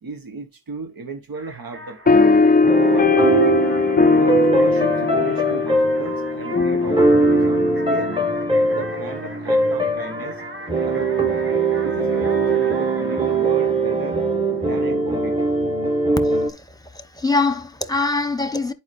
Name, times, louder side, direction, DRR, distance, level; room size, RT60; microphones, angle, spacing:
voice 1, 0.0-3.2 4.2-8.2 8.7-10.4 10.8-11.4 11.8-14.2 14.6-15.4, right 4 dB, 80° right, 1.1 m, -34 dB
sound 1, 1.3-14.8, right 1 dB, 35° right, 1.4 m, -39 dB
sound 2, 2.1-8.9, left 4 dB, 25° left, 0.4 m, -19 dB
sound 3, 2.1-16.5, right 3 dB, 15° right, 1.6 m, -21 dB
voice 2, 16.2-18.7, left 3 dB, 10° left, 1.2 m, -24 dB
10.5 x 4.8 x 2.6 m
wide cardioid pair, 50°, 35 cm